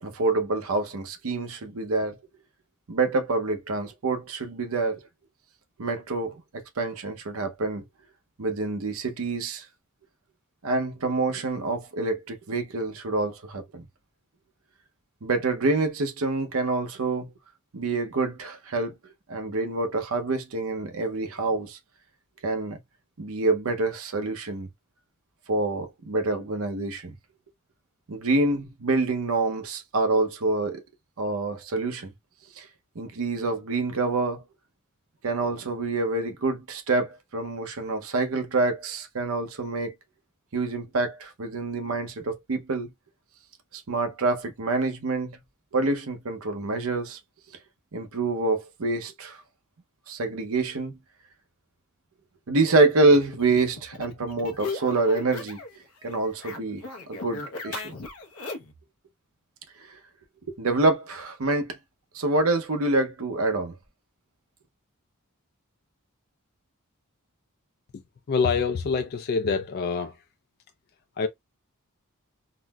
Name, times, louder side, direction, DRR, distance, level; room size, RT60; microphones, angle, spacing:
voice 1, 0.0-2.2 2.9-5.0 5.8-7.8 8.4-9.6 10.6-13.6 15.2-17.3 17.7-18.9 19.3-21.8 22.4-22.8 23.2-24.7 25.5-27.1 28.1-30.8 31.2-32.1 32.6-32.7 33.0-34.4 35.2-39.9 40.5-42.9 43.7-45.4 45.7-47.2 47.9-49.4 50.1-51.0 52.5-55.6 56.0-56.8 57.1-57.9 59.9-60.0 60.5-61.8 62.1-63.7, right 3 dB, 75° right, 0.7 m, -26 dB
sound 1, 53.1-55.8 56.0-58.8, left 3 dB, 85° left, 0.7 m, -38 dB
voice 2, 68.3-70.2 71.2-71.3, left 5 dB, 45° left, 0.3 m, -25 dB
3.8 x 2.0 x 2.2 m
head